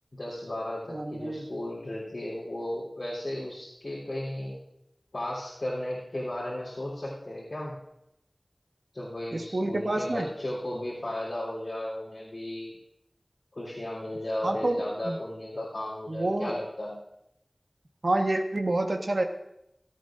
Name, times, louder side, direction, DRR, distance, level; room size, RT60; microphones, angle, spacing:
voice 1, 0.1-4.6 5.1-7.7 8.9-12.8 13.5-17.0, left 1 dB, 80° left, -7 dB, 3.5 m, -35 dB
voice 2, 0.9-1.4 9.3-10.3 14.4-15.2 16.1-16.6 18.0-19.2, right 2 dB, 75° right, 3 dB, 1.3 m, -28 dB
17.0 x 13.0 x 2.6 m, 0.84 s
wide cardioid pair, 40°, 0 cm